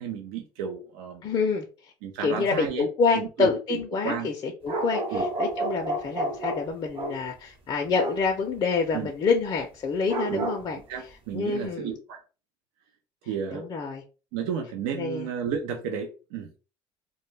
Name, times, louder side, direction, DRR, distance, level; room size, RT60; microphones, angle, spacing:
voice 1, 0.0-1.2 2.0-2.9 3.1-3.8 4.0-4.3 5.1-5.3 8.9-9.1 10.3-10.5 10.9-12.2 13.3-13.7 14.3-16.5, right 7 dB, 90° right, 0.4 m, -32 dB
voice 2, 1.2-1.7 2.2-10.8 11.3-11.9 13.5-14.0 14.9-15.3, left 4 dB, 35° left, 0.4 m, -27 dB
sound 1, 4.7-7.3 7.9-8.3 10.1-10.7, right 1 dB, 45° right, 0.8 m, -30 dB
2.1 x 2.1 x 3.1 m
supercardioid pair, 105°, 13 cm